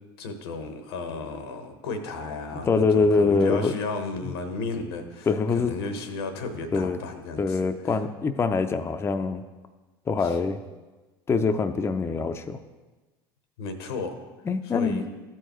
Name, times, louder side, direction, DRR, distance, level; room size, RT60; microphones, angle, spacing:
voice 1, 0.2-7.6 10.2-10.4 13.6-14.1 14.6-15.0, left 3 dB, 85° left, 7 dB, 1.0 m, -34 dB
voice 2, 2.7-3.7 4.2-4.3 5.3-5.7 6.7-7.0 7.4-9.4 10.1-10.6 11.3-12.6 14.5-15.0, left 4 dB, 20° left, 7 dB, 0.4 m, -24 dB
13.5 x 4.6 x 3.0 m, 1.2 s
hypercardioid pair, 90°, 13 cm